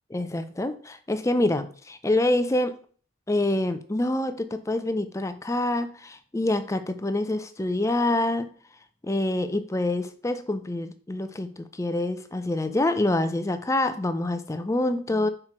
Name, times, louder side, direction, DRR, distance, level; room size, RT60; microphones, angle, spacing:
voice 1, 0.1-2.8 3.3-8.5 9.0-15.3, left 1 dB, 15° left, 11 dB, 0.4 m, -26 dB
5.8 x 4.5 x 4.4 m, 0.43 s
head